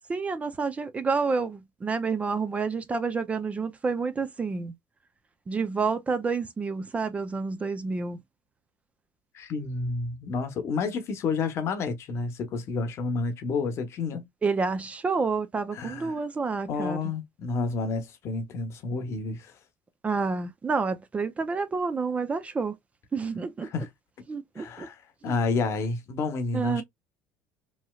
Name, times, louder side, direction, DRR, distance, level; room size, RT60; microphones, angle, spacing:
voice 1, 0.1-4.7 5.5-8.2 14.4-17.0 20.0-22.7 23.1-23.7 24.3-24.9 25.2-25.4 26.5-26.8, right 4 dB, 20° right, 0.4 m, -29 dB
voice 2, 9.3-14.3 15.7-16.1 16.7-19.5 23.6-23.9 24.6-26.8, left 4 dB, 50° left, 0.8 m, -30 dB
3.1 x 2.7 x 2.3 m
cardioid pair, 120°, 6 cm